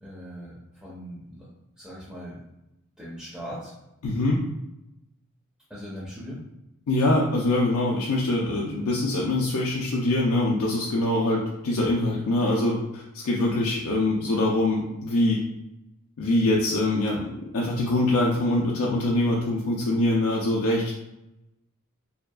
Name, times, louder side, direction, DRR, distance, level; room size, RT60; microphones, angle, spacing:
voice 1, 0.0-1.5 1.8-2.4 3.0-3.7 5.7-6.4, equal, ahead, -8 dB, 0.4 m, -39 dB
voice 2, 4.0-4.4 6.9-15.4 16.2-20.9, left 1 dB, 85° left, -3 dB, 0.4 m, -24 dB
2.7 x 2.4 x 2.2 m, 0.92 s
head